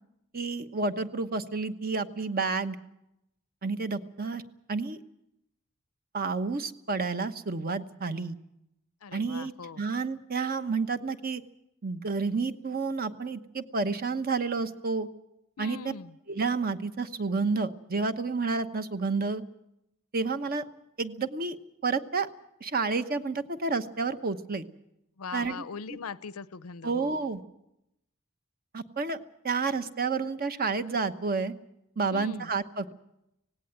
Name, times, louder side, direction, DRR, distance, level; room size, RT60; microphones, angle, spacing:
voice 1, 0.3-2.8 3.6-4.4 4.7-5.0 6.1-8.4 9.1-11.4 11.8-15.1 15.6-15.8 16.3-19.4 20.1-20.6 21.0-21.6 21.8-22.3 22.6-24.6 25.3-25.5 26.8-27.4 28.7-29.2 29.4-31.5 32.0-32.9, right 4 dB, 45° right, 10 dB, 1.1 m, -30 dB
voice 2, 9.0-9.8 15.6-16.2 25.2-27.2 32.1-32.5, left 5 dB, 90° left, 17 dB, 0.7 m, -41 dB
18.0 x 17.5 x 9.1 m, 0.84 s
head